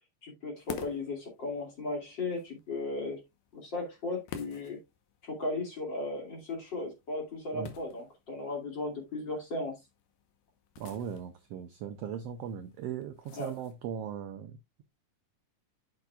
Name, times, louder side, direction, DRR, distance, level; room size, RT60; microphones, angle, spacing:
voice 1, 0.2-3.2 3.5-4.8 5.2-9.7 13.4-13.5, left 2 dB, 35° left, 3.0 m, -36 dB
sound 1, 0.6-14.1, left 8 dB, 80° left, 2.6 m, -51 dB
voice 2, 10.8-14.8, right 8 dB, 80° right, 1.4 m, -39 dB
9.2 x 7.3 x 2.3 m
omnidirectional pair, 3.7 m